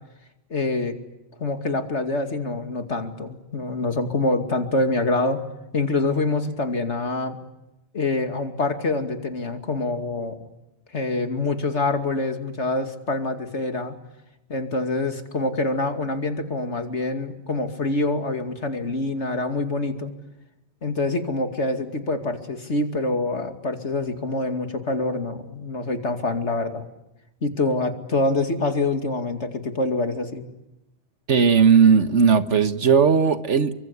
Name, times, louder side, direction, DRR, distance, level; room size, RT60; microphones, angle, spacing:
voice 1, 0.5-1.0 1.4-5.4 5.7-7.4 7.9-10.5 10.9-13.9 14.5-20.1 20.8-26.9 27.4-30.5, left 2 dB, 80° left, 2.8 m, -25 dB
voice 2, 31.3-33.7, right 6 dB, 85° right, 1.7 m, -17 dB
29.5 x 24.0 x 8.2 m
omnidirectional pair, 1.2 m